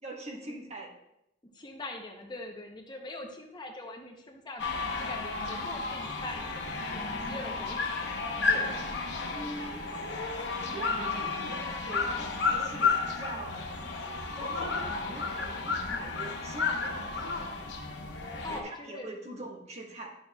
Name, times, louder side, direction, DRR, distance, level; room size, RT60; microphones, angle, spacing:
voice 1, 0.0-0.9 8.4-8.8 9.3-9.9 10.7-13.7 14.3-17.3 18.5-20.2, right 2 dB, 35° right, 0 dB, 1.3 m, -42 dB
voice 2, 1.4-6.7 6.9-7.9 18.4-19.1, left 2 dB, 25° left, 3 dB, 0.7 m, -42 dB
sound 1, 4.6-18.6, left 4 dB, 70° left, 0.9 m, -32 dB
11.0 x 6.5 x 2.3 m, 0.82 s
head